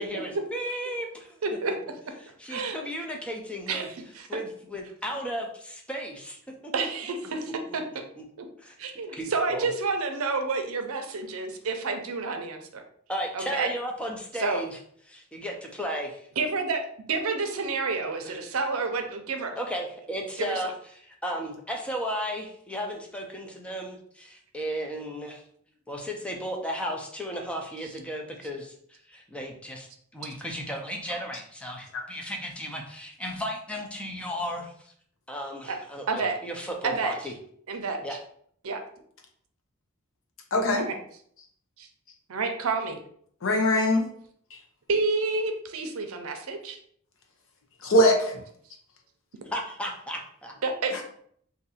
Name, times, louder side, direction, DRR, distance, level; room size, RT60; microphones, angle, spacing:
voice 1, 0.0-1.4 2.2-3.9 4.3-6.4 6.6-6.7 8.2-8.3 8.6-8.7 9.1-9.7 13.1-14.8 15.1-16.2 18.3-18.4 19.6-20.7 21.0-25.4 25.9-29.9 30.1-34.9 35.3-37.3 38.0-38.2 49.5-50.5, equal, 5° left, 1 dB, 0.5 m, -34 dB
voice 2, 1.4-1.7 2.5-2.8 3.7-4.3 6.7-7.8 8.4-8.5 8.8-12.8 13.3-13.7 14.4-14.6 16.4-16.8 17.1-19.6 20.4-20.6 35.6-35.8 36.1-36.4 36.8-37.2 37.7-38.0 38.6-38.8 40.8-41.0 41.8-41.9 42.3-43.0 44.9-46.8 50.6-50.9, right 4 dB, 75° right, 5 dB, 0.6 m, -29 dB
voice 3, 40.5-40.9 43.4-44.1 47.8-48.4 50.9-51.0, left 1 dB, 65° left, 2 dB, 0.7 m, -21 dB
2.7 x 2.6 x 4.0 m, 0.63 s
head